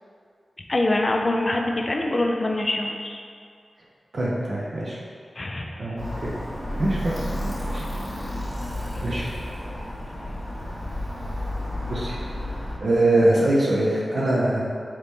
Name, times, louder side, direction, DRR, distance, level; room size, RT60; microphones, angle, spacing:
voice 1, 0.7-3.2 5.4-5.8, left 2 dB, 45° left, 2 dB, 0.4 m, -24 dB
voice 2, 4.1-5.0 5.8-6.3 6.8-7.1 7.7-7.8 9.0-9.3 11.9-12.1 12.8-14.7, right 1 dB, 65° right, -6 dB, 0.6 m, -22 dB
Alarm, 6.0-12.8, left 1 dB, 10° left, 1.5 m, -31 dB
3.4 x 3.0 x 4.0 m, 2.2 s
cardioid pair, 50°, 0 cm